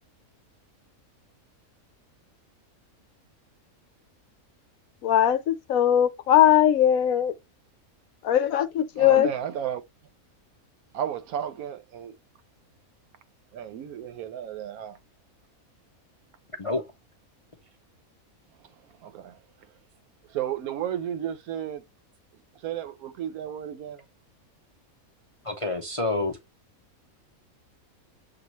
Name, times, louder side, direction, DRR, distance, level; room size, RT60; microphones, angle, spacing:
voice 1, 5.0-7.3 8.2-9.3, left 11 dB, 70° left, 1.1 m, -20 dB
voice 2, 9.0-9.8 10.9-12.1 13.5-15.0 19.0-19.3 20.3-21.8 22.6-24.0, right 9 dB, 80° right, 1.1 m, -33 dB
voice 3, 25.4-26.4, left 2 dB, 45° left, 0.4 m, -28 dB
6.7 x 2.3 x 2.9 m
omnidirectional pair, 1.5 m